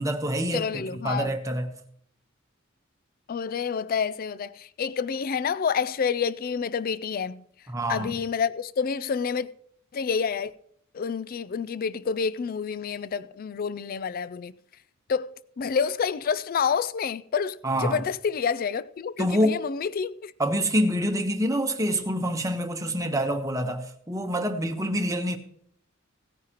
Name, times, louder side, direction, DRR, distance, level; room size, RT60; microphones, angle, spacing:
voice 1, 0.0-1.7 7.7-8.1 17.6-18.0 19.2-19.6 20.4-25.4, equal, 15° right, 1.1 m, -26 dB
voice 2, 0.5-1.3 3.3-7.4 7.9-9.5 9.9-10.5 10.9-14.5 15.1-20.3, left 6 dB, 45° left, 0.4 m, -28 dB
17.5 x 9.5 x 3.0 m
head